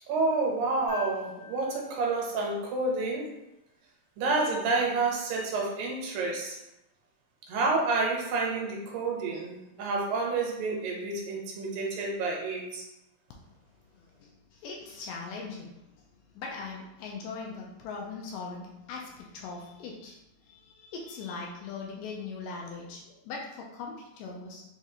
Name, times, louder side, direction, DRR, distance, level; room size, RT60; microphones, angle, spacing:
voice 1, 0.1-3.3 4.2-6.6 7.5-12.8, right 3 dB, 80° right, -1 dB, 2.5 m, -29 dB
sound 1, 0.9-3.2 5.2-5.3, left 4 dB, 60° left, 0.9 m, -46 dB
voice 2, 14.0-15.8 16.3-20.2 20.5-24.6, left 4 dB, 80° left, -1 dB, 2.0 m, -40 dB
6.0 x 2.4 x 2.7 m, 0.90 s
omnidirectional pair, 4.1 m